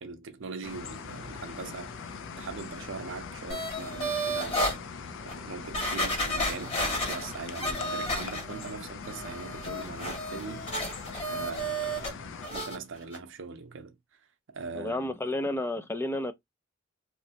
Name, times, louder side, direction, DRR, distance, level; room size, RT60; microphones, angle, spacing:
voice 1, 0.0-4.8 5.2-15.1, right 4 dB, 65° right, 0.7 m, -41 dB
sound 1, 0.6-12.5, left 5 dB, 65° left, 0.5 m, -42 dB
sound 2, 3.5-4.8 5.3-5.4 5.7-8.7 9.0-12.1 12.4-12.8 13.1-13.2, equal, 30° left, 1.8 m, -32 dB
voice 2, 14.7-16.3, left 1 dB, 10° left, 0.4 m, -31 dB
3.1 x 2.8 x 2.8 m
head